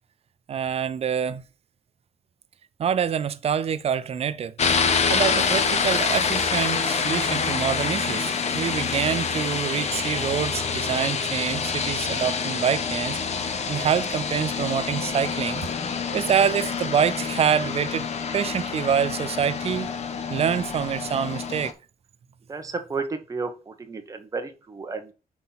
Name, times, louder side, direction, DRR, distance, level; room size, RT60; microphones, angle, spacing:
voice 1, 0.5-1.4 2.8-15.7 16.1-18.1 18.3-19.9 20.3-21.7, right 8 dB, 45° right, 0.4 m, -26 dB
sound 1, 4.6-21.7, left 5 dB, 50° left, 0.9 m, -27 dB
voice 2, 22.5-25.1, right 4 dB, 25° right, 1.0 m, -32 dB
5.8 x 4.2 x 5.6 m
wide cardioid pair, 175°, 15 cm